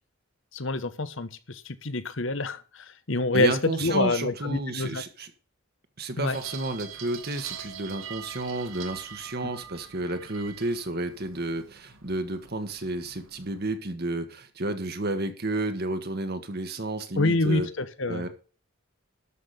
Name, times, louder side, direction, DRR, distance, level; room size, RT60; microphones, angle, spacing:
voice 1, 0.5-5.0 6.2-6.4 17.2-18.3, left 2 dB, 60° left, 1.1 m, -27 dB
voice 2, 3.3-5.3 6.0-17.7 18.1-18.3, right 2 dB, 50° right, 1.5 m, -31 dB
sound 1, 6.3-13.7, right 8 dB, 70° right, 2.0 m, -44 dB
12.5 x 6.0 x 6.7 m
head